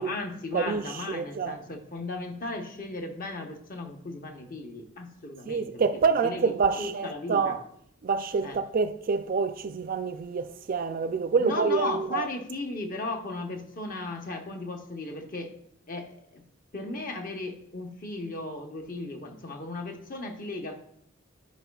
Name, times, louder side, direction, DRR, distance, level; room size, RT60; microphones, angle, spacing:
voice 1, 0.0-5.8 6.2-6.4 6.8-7.6 8.4-8.6 11.4-15.5 15.9-16.4 16.7-20.8, left 2 dB, 45° left, 1.0 m, -36 dB
voice 2, 0.5-1.6 5.4-7.6 8.0-12.3, right 5 dB, 45° right, 0.4 m, -27 dB
12.5 x 5.2 x 2.3 m
head